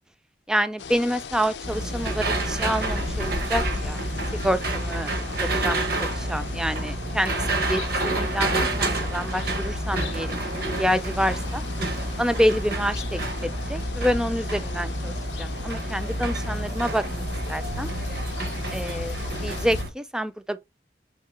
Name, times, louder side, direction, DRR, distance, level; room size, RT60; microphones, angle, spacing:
voice 1, 0.5-4.0 4.4-5.1 5.4-11.6 12.2-17.2 17.5-17.9 18.7-19.2 19.4-20.6, equal, 5° right, 0.3 m, -27 dB
sound 1, 0.8-19.8, left 5 dB, 80° left, 0.5 m, -38 dB
sound 2, 1.6-19.9, right 1 dB, 55° right, 1.0 m, -29 dB
3.7 x 3.1 x 4.6 m
head